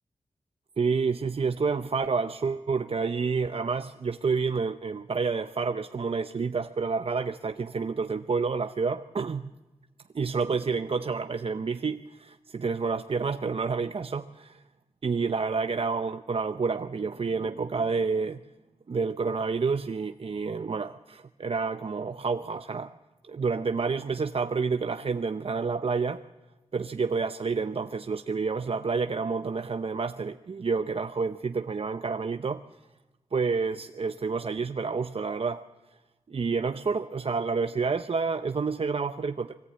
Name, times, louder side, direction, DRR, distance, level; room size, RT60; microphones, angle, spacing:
voice 1, 0.8-9.4 10.1-14.6 15.0-18.4 18.9-22.9 23.3-26.2 26.7-32.6 33.3-35.6 36.3-39.5, right 4 dB, 50° right, 8 dB, 0.7 m, -29 dB
22.0 x 17.5 x 8.6 m, 1.1 s
cardioid pair, 55°, 12 cm